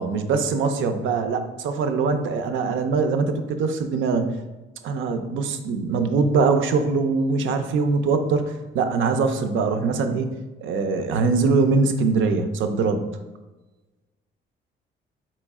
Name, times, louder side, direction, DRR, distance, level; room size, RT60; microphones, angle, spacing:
voice 1, 0.0-4.3 4.8-10.3 10.6-13.1, right 4 dB, 75° right, 8 dB, 0.5 m, -22 dB
4.3 x 3.1 x 3.5 m, 1.1 s
cardioid pair, 90°, 20 cm